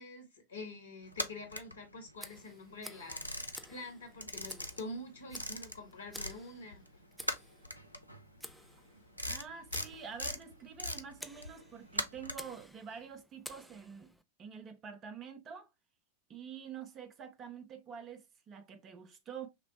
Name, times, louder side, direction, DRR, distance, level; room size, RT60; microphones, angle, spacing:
voice 1, 0.0-3.4 3.7-6.8, left 2 dB, 75° left, 1.5 m, -46 dB
sound 1, 1.1-2.4 2.7-6.4 6.7-12.6, left 1 dB, 90° right, 0.5 m, -40 dB
Tick, 2.2-14.2, equal, ahead, 0.4 m, -53 dB
voice 2, 9.2-14.1 14.4-15.7 16.3-19.5, right 7 dB, 30° right, 0.7 m, -47 dB
6.0 x 2.1 x 2.8 m
figure-of-eight pair, 90°, 0 cm